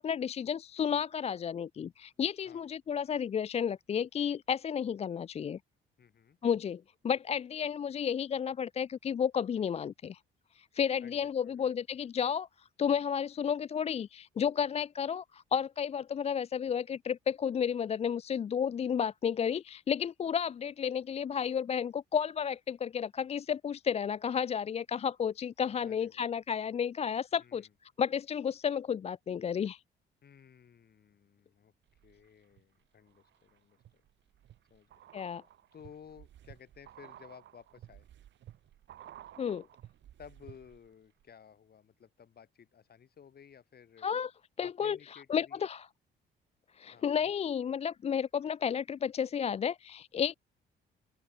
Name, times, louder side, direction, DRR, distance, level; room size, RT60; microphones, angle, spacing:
voice 1, 0.0-5.6 6.4-10.2 10.5-29.8 35.1-35.4 39.4-39.6 44.0-44.3 44.6-45.0 45.3-45.8 46.7-50.3, left 7 dB, 30° left, 0.4 m, -32 dB
voice 2, 6.0-6.4 11.0-12.1 25.8-26.3 27.4-27.7 30.2-34.0 34.7-35.0 35.7-38.1 40.2-44.1 44.6-45.6 46.9-47.1, left 7 dB, 50° left, 7.1 m, -56 dB
sound 1, 31.9-32.6 33.1-40.9 41.2-41.3, right 12 dB, 65° right, 1.1 m, -54 dB
open air
cardioid pair, 90°, 20 cm